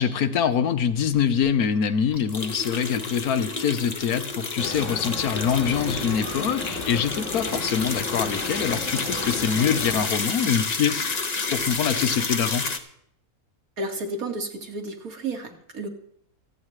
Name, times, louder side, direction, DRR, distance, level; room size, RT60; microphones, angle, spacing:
voice 1, 0.0-11.0 11.5-12.7, left 7 dB, 90° left, 10 dB, 1.4 m, -24 dB
sound 1, 1.5-1.6 2.1-12.8, left 4 dB, 30° left, 1.0 m, -30 dB
sound 2, 4.6-10.1, left 3 dB, 60° left, 2.3 m, -34 dB
voice 2, 13.8-15.9, right 2 dB, 75° right, 3 dB, 2.3 m, -32 dB
27.0 x 9.0 x 3.2 m, 0.68 s
omnidirectional pair, 1.5 m